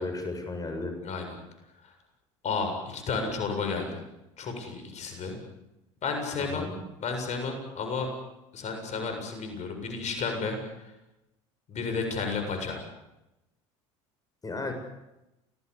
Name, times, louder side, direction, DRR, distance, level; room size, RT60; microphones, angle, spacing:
voice 1, 0.0-1.0 6.5-6.7 14.4-14.7, left 2 dB, 25° left, 6 dB, 7.2 m, -34 dB
voice 2, 1.0-1.3 1.8-1.9 2.4-4.0 4.4-5.4 6.0-6.7 7.0-8.1 8.5-10.9 11.7-12.8, left 4 dB, 45° left, 5 dB, 7.5 m, -32 dB
28.5 x 19.0 x 8.5 m, 0.95 s
hypercardioid pair, 75°, 16 cm